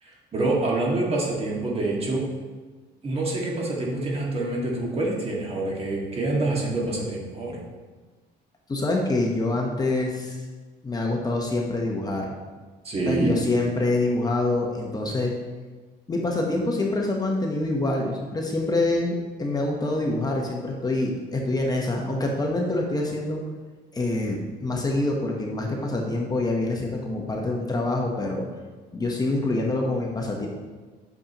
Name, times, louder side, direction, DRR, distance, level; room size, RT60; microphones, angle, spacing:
voice 1, 0.0-2.2 3.0-7.6 12.8-13.3, right 2 dB, 35° right, -2 dB, 1.9 m, -26 dB
voice 2, 8.7-10.4 10.8-12.4 13.1-15.3 16.1-23.4 23.9-28.4 28.9-30.5, left 2 dB, 25° left, 0 dB, 1.0 m, -26 dB
8.4 x 6.6 x 3.0 m, 1.3 s
cardioid pair, 110°, 17 cm